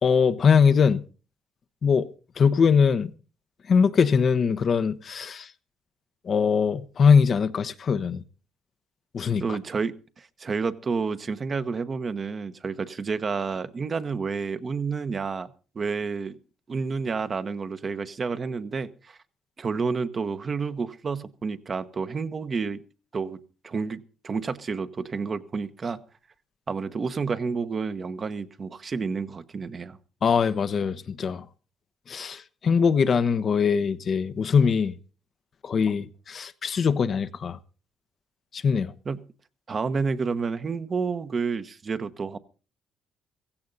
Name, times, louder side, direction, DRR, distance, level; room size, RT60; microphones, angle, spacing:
voice 1, 0.0-1.0 1.8-2.1 2.4-3.1 3.7-5.5 6.3-8.2 9.1-9.4 30.2-31.4 32.1-34.9 35.6-37.6 38.5-38.9, left 6 dB, 55° left, 1.0 m, -22 dB
voice 2, 9.4-16.4 16.7-19.2 19.6-22.8 23.1-26.0 26.7-30.0 39.0-39.3 39.7-42.4, right 5 dB, 45° right, 1.1 m, -30 dB
16.0 x 15.5 x 4.0 m
supercardioid pair, 65°, 0 cm